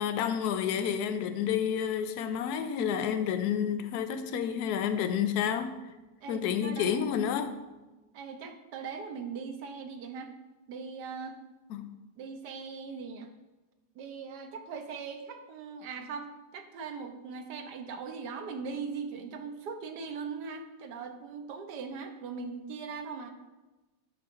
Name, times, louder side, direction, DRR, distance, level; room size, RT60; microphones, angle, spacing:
voice 1, 0.0-5.8 6.3-7.6 11.7-11.8, left 8 dB, 75° left, 1.1 m, -30 dB
voice 2, 6.2-7.0 8.1-10.3 10.7-11.4 12.2-13.3 13.9-23.3, right 5 dB, 85° right, 1.4 m, -40 dB
13.0 x 5.6 x 2.6 m
omnidirectional pair, 1.8 m